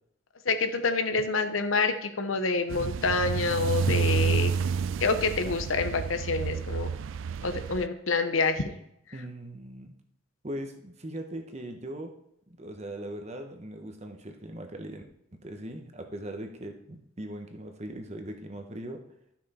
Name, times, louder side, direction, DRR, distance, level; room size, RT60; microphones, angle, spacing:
voice 1, 0.4-4.5 5.0-6.9 7.4-8.7, left 4 dB, 90° left, 9 dB, 0.8 m, -27 dB
sound 1, 2.7-7.9, right 6 dB, 75° right, 0.3 m, -29 dB
voice 2, 9.1-9.9 10.4-12.1 12.6-15.0 15.3-19.0, right 1 dB, 35° right, 5 dB, 1.0 m, -39 dB
12.0 x 5.9 x 4.2 m, 0.79 s
head